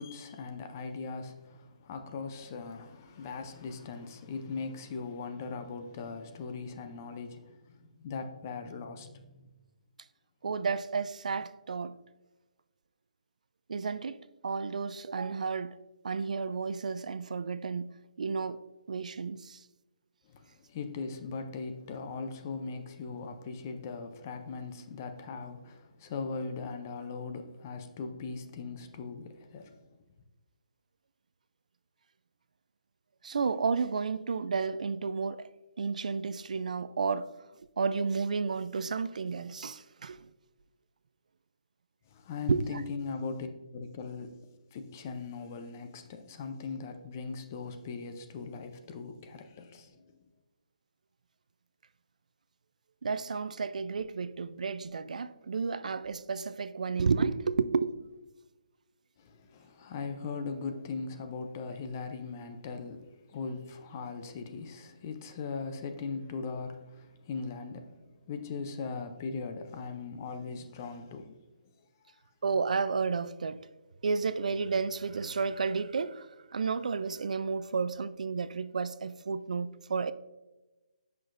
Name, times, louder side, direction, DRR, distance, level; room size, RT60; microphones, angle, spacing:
voice 1, 0.0-9.5 20.3-29.8 42.1-44.4 44.7-50.2 59.2-71.4, left 4 dB, 20° left, 0.4 m, -39 dB
voice 2, 10.4-12.0 13.7-15.8 16.0-17.9 18.2-18.6 18.9-19.6 33.2-35.5 35.8-37.3 37.8-40.3 42.5-42.6 53.0-58.1 72.4-73.6 74.0-80.1, right 5 dB, 65° right, 0.3 m, -32 dB
7.0 x 5.8 x 2.5 m
hypercardioid pair, 170°, 4 cm